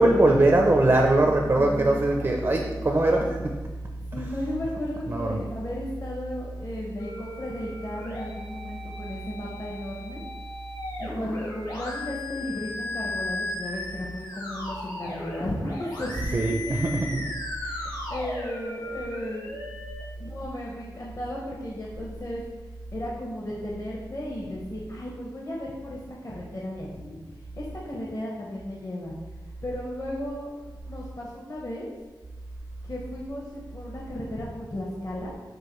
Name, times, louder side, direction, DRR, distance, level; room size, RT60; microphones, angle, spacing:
voice 1, 0.0-3.5 5.1-5.4 16.3-17.2, right 2 dB, 35° right, 2 dB, 0.4 m, -21 dB
voice 2, 1.2-2.9 4.1-10.2 11.0-16.7 17.0-17.1 17.6-19.5 20.2-22.4 22.9-27.2 27.6-29.1 29.6-30.6 30.8-31.9 32.8-35.4, left 1 dB, 45° left, -4 dB, 0.7 m, -35 dB
sound 1, 7.0-20.0, left 1 dB, 65° left, 1.5 m, -36 dB
6.3 x 2.5 x 3.0 m, 1.2 s
wide cardioid pair, 70°, 8 cm